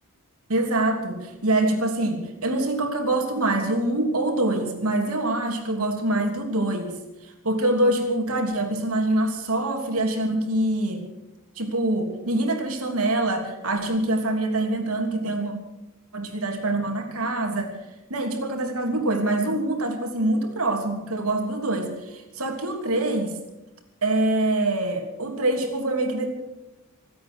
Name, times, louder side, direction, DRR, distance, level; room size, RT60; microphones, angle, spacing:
voice 1, 0.5-6.9 7.4-11.0 11.6-15.5 16.1-17.7 18.1-23.4 24.0-26.3, right 1 dB, 80° right, 3 dB, 3.2 m, -25 dB
26.0 x 8.7 x 6.4 m, 0.96 s
head